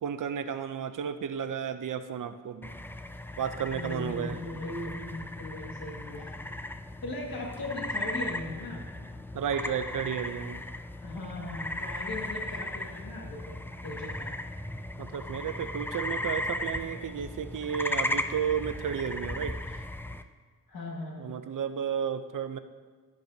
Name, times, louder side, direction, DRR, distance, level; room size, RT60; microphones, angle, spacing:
voice 1, 0.0-2.7 3.4-4.4 9.3-10.6 15.0-19.6 21.2-22.6, right 8 dB, 65° right, 10 dB, 0.6 m, -32 dB
sound 1, 2.6-20.2, left 1 dB, 5° left, 0.4 m, -36 dB
voice 2, 3.7-6.4 7.0-8.8 11.0-14.3 20.7-21.3, left 2 dB, 80° left, -1 dB, 2.0 m, -38 dB
12.0 x 9.6 x 2.8 m, 1.5 s
cardioid pair, 85°, 35 cm